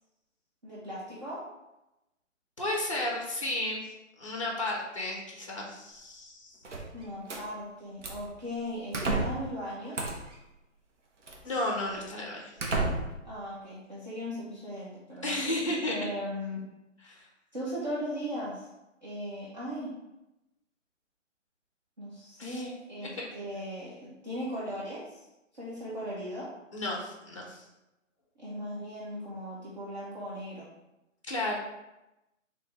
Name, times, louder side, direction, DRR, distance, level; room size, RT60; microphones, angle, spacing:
voice 1, 0.6-1.4 6.9-10.0 13.2-15.4 15.8-16.6 17.5-18.7 19.0-19.9 22.0-25.2 25.6-26.5 28.4-30.7, equal, 35° right, -9 dB, 0.7 m, -38 dB
voice 2, 2.6-3.9 4.2-6.6 11.4-12.5 15.2-16.1 17.1-17.3 22.4-22.7 23.0-23.3 26.7-27.6 31.3-31.5, left 1 dB, 25° left, -1 dB, 0.5 m, -33 dB
sound 1, 6.6-7.4 8.0-8.3 8.9-9.5 9.9-10.4 11.3-11.4 12.0-12.1 12.6-13.3, right 2 dB, 65° right, 0.9 m, -31 dB
3.5 x 3.1 x 3.3 m, 0.95 s
hypercardioid pair, 165°, 39 cm